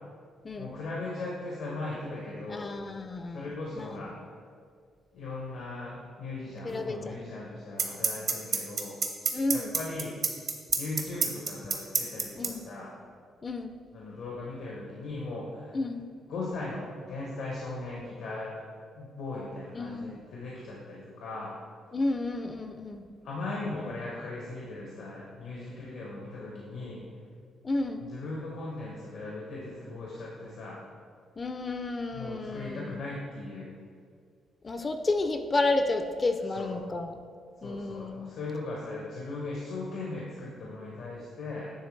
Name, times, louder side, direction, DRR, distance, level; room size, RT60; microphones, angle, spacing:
voice 1, 0.6-2.8 3.3-4.1 5.1-9.0 9.5-10.2 10.8-13.0 13.9-15.8 16.3-18.6 18.9-21.5 23.2-27.1 28.0-30.8 32.1-33.7 36.5-36.8 37.6-41.7, left 2 dB, 80° left, -4 dB, 0.9 m, -38 dB
voice 2, 2.5-4.0 6.6-7.2 9.3-9.8 12.4-12.7 13.4-13.8 15.7-16.0 19.7-20.2 21.9-23.0 27.6-28.1 31.4-33.0 34.6-37.2 37.6-38.3, left 2 dB, 30° left, 7 dB, 0.4 m, -31 dB
sound 1, 6.7-6.8 7.8-12.5, right 6 dB, 60° right, 0.8 m, -26 dB
9.7 x 3.3 x 3.1 m, 2.1 s
cardioid pair, 90°, 0 cm